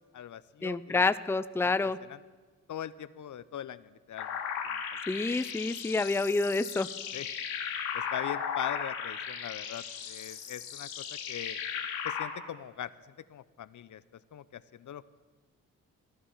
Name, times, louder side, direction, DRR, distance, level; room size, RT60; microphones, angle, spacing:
voice 1, 0.0-1.0 1.6-2.2 2.7-4.4 4.7-4.8 7.1-7.3 7.9-11.6 12.0-14.0 14.3-15.0, left 10 dB, 55° left, 16 dB, 0.7 m, -41 dB
voice 2, 0.6-2.0 5.1-6.9, left 3 dB, 5° left, 14 dB, 0.6 m, -28 dB
sound 1, 4.2-12.3, left 7 dB, 90° left, 1.8 m, -36 dB
15.5 x 11.0 x 7.2 m, 1.4 s
supercardioid pair, 50°, 36 cm